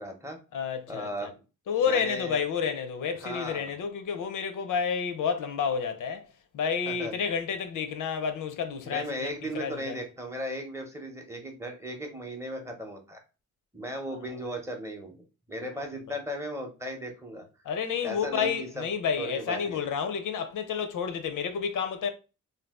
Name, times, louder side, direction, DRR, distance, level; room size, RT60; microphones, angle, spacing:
voice 1, 0.0-0.4 0.9-1.4 1.8-2.4 3.2-3.7 6.9-7.1 8.8-13.2 13.7-17.4 18.0-18.9 19.2-19.8, equal, 10° right, 0.6 m, -36 dB
voice 2, 0.5-1.3 1.7-6.2 6.5-10.0 17.6-22.1, left 6 dB, 90° left, 0.6 m, -30 dB
2.6 x 2.3 x 3.4 m
wide cardioid pair, 160°, 30 cm